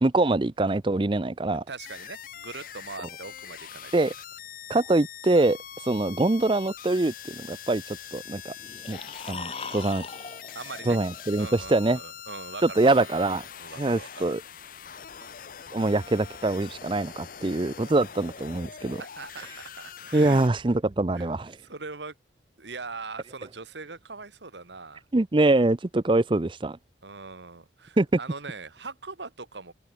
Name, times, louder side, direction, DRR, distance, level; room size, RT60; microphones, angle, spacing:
voice 1, 0.0-1.6 3.9-4.1 4.7-5.6 5.9-8.5 8.9-9.0 9.3-10.1 10.9-12.0 12.6-13.4 13.8-14.4 15.7-19.0 20.1-21.6 25.1-26.8 28.0-28.1, right 2 dB, 25° right, 0.5 m, -24 dB
voice 2, 1.7-3.9 10.5-11.0 11.4-13.1 13.6-14.4 14.9-15.1 19.0-20.4 21.1-21.3 21.6-22.1 22.6-25.0 27.0-29.7, right 4 dB, 75° right, 1.8 m, -41 dB
sound 1, 1.8-20.5, left 8 dB, 50° left, 0.7 m, -43 dB
sound 2, 8.6-11.7, left 4 dB, 35° left, 2.8 m, -41 dB
open air
head